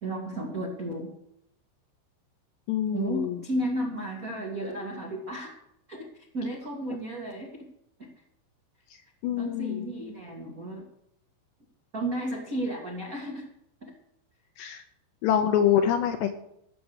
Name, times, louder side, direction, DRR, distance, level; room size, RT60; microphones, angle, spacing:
voice 1, 0.0-1.1 2.9-5.5 5.9-7.6 8.0-8.1 9.4-10.9 11.9-13.4 13.8-13.9, right 1 dB, 80° right, -2 dB, 0.7 m, -33 dB
voice 2, 2.7-3.4 9.2-9.9 14.6-14.8 15.2-16.3, left 9 dB, 75° left, 6 dB, 2.7 m, -25 dB
15.0 x 6.7 x 7.9 m, 0.78 s
omnidirectional pair, 5.6 m